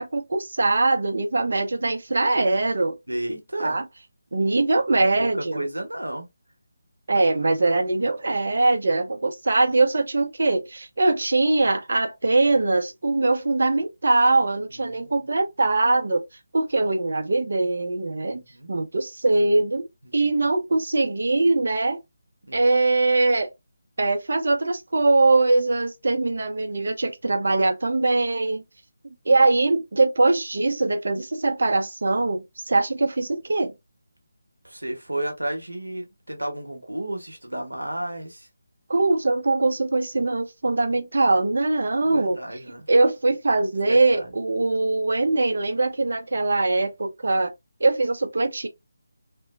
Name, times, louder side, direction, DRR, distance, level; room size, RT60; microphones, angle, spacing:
voice 1, 0.0-3.0 3.6-3.8 4.3-5.6 7.1-16.2 16.5-18.4 18.7-19.9 20.1-22.0 22.5-23.5 24.0-28.6 29.0-33.7 38.9-42.4 42.9-47.5 47.8-48.7, right 2 dB, 60° right, 0.6 m, -22 dB
voice 2, 3.1-3.8 5.0-6.3 14.7-15.2 18.3-18.7 20.0-20.3 22.4-22.7 34.6-38.5 42.0-42.9 43.9-44.3, right 1 dB, 85° right, 1.0 m, -32 dB
3.0 x 2.1 x 2.4 m
figure-of-eight pair, 155°, 0 cm